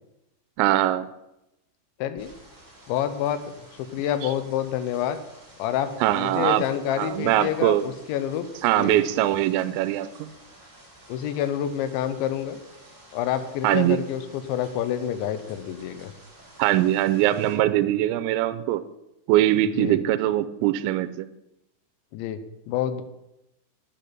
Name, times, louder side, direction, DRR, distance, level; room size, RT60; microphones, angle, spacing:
voice 1, 0.6-1.1 4.2-4.3 6.0-6.6 7.0-7.9 8.6-10.3 13.6-14.0 16.6-18.8 19.3-21.3, right 13 dB, 85° right, 11 dB, 2.8 m, -22 dB
voice 2, 2.0-2.3 2.9-3.4 3.8-5.2 5.6-8.5 8.8-9.0 11.1-12.6 13.1-16.1 19.8-20.0 22.1-22.4 22.7-23.0, left 10 dB, 80° left, 11 dB, 3.1 m, -28 dB
sound 1, 2.2-17.6, right 1 dB, 5° right, 2.1 m, -51 dB
10.5 x 8.7 x 5.9 m, 0.89 s
omnidirectional pair, 5.3 m